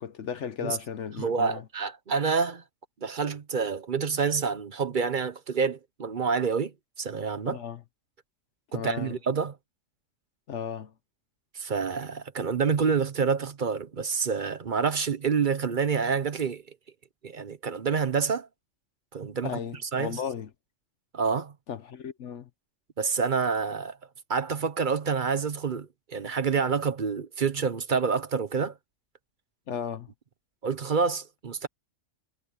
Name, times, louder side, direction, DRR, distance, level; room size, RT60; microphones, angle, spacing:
voice 1, 0.0-1.6 7.5-7.8 8.7-9.1 10.5-10.9 19.4-20.5 21.7-22.5 29.7-30.1, left 8 dB, 65° left, 1.1 m, -35 dB
voice 2, 1.2-2.6 3.0-7.6 8.7-9.6 11.5-16.6 17.2-18.5 19.1-20.2 21.1-21.5 23.0-24.0 24.3-28.8 30.6-31.7, right 5 dB, 45° right, 0.9 m, -28 dB
omnidirectional pair, 1.4 m